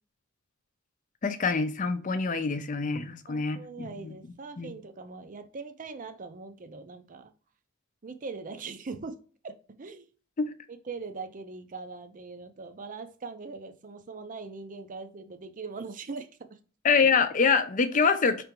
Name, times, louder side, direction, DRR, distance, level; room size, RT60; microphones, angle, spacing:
voice 1, 1.2-4.7 10.4-10.5 16.8-18.4, left 5 dB, 40° left, 0.5 m, -26 dB
voice 2, 3.3-7.3 8.0-9.2 9.4-10.1 10.7-16.3 17.0-17.1, right 4 dB, 40° right, 0.5 m, -41 dB
4.9 x 3.4 x 3.0 m
head